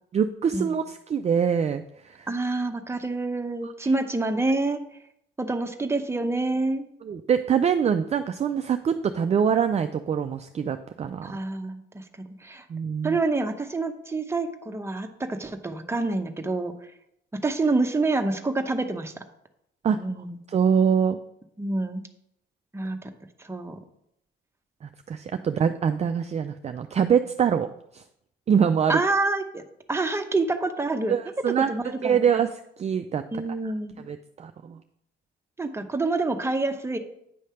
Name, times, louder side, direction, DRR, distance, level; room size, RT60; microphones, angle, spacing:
voice 1, 0.1-2.3 3.6-3.7 7.0-11.3 12.7-13.2 19.8-20.0 20.5-21.2 24.8-27.7 27.9-28.0 28.5-29.0 31.1-31.7 32.0-32.5 32.8-33.2 34.1-34.8, right 7 dB, 35° right, 8 dB, 0.4 m, -24 dB
voice 2, 2.3-4.8 5.4-6.9 11.2-12.0 12.4-12.7 13.0-16.7 17.3-19.2 20.0-20.4 21.6-22.0 22.7-23.1 23.4-23.8 28.9-29.6 29.9-31.2 31.6-32.4 33.3-34.1 35.6-37.0, right 3 dB, 15° right, 6 dB, 0.8 m, -27 dB
9.2 x 3.2 x 5.6 m, 0.77 s
cardioid pair, 90°, 20 cm